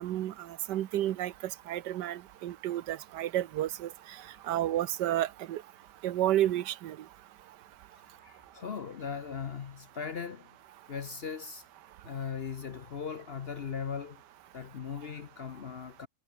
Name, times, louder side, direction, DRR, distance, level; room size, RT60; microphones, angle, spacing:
voice 1, 0.0-1.3 1.7-3.9 4.5-5.6 6.0-7.0, right 12 dB, 90° right, 1.4 m, -31 dB
voice 2, 8.2-10.6 10.9-11.6 12.0-14.2 14.5-16.1, left 6 dB, 50° left, 0.8 m, -39 dB
omnidirectional pair, 1.8 m